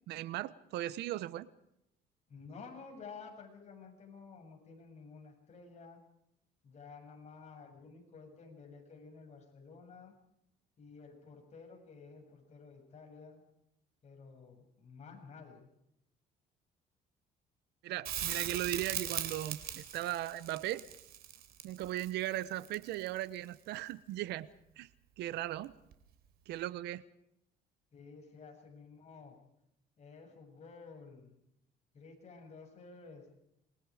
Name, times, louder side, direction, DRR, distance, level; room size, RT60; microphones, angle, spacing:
voice 1, 0.1-1.5 17.8-20.8 21.6-24.5 24.8-24.9 25.2-25.7 26.5-27.0, right 14 dB, 80° right, 18 dB, 1.0 m, -37 dB
voice 2, 2.3-6.0 6.6-10.1 10.8-13.4 14.0-15.6 27.9-29.4 30.0-31.3 31.9-33.3, left 5 dB, 40° left, 2 dB, 7.6 m, -52 dB
Crackle, 18.0-23.2 25.9-26.0, right 10 dB, 65° right, 3.7 m, -39 dB
27.5 x 23.0 x 4.9 m, 0.78 s
cardioid pair, 110°, 17 cm